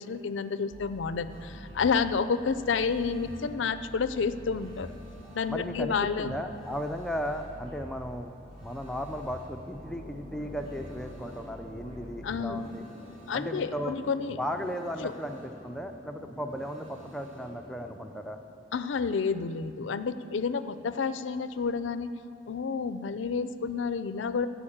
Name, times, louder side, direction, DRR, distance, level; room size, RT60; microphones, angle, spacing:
voice 1, 0.0-4.9 5.3-6.4 12.2-12.6 13.3-14.4 15.0-15.1 18.7-22.1 22.5-24.5, left 5 dB, 90° left, 12 dB, 0.5 m, -30 dB
sound 1, 0.7-13.0, equal, 35° right, 1.9 m, -47 dB
sound 2, 1.3-17.9, right 1 dB, 55° right, 2.3 m, -56 dB
voice 2, 5.5-8.3 8.6-12.9 13.3-13.9 14.3-18.4, equal, 5° left, 5 dB, 0.4 m, -36 dB
Thunder, 9.6-18.9, equal, 85° right, 2.5 m, -49 dB
13.5 x 5.1 x 8.6 m, 2.7 s
head